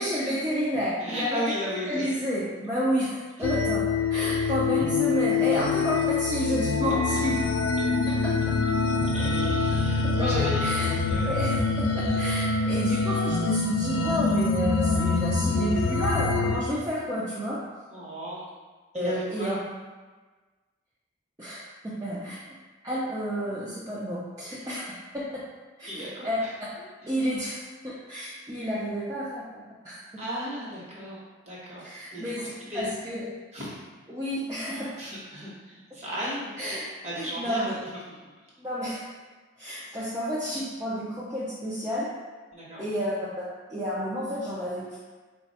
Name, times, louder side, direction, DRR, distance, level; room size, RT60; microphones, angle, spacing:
voice 1, 0.0-1.4 1.9-7.4 8.1-8.4 9.7-9.8 10.2-10.9 11.3-17.6 18.9-19.6 21.4-22.4 22.8-24.8 25.8-26.4 27.1-30.0 31.8-33.3 34.1-35.0 36.6-36.9 37.2-37.8 38.6-39.0 39.6-42.1 42.8-43.4 43.7-45.0, equal, 15° right, -9 dB, 0.5 m, -30 dB
voice 2, 1.0-2.1 7.1-7.2 9.1-10.7 11.1-11.3 17.9-18.4 18.9-19.6 25.9-26.5 27.0-27.1 30.2-31.2 31.5-31.8 32.1-32.9 33.5-33.7 35.0-36.7 37.0-37.7 42.5-42.8, equal, 35° right, -7 dB, 1.1 m, -35 dB
sound 1, 3.4-16.6, left 4 dB, 85° left, 0.4 m, -25 dB
4.1 x 2.3 x 4.1 m, 1.3 s
head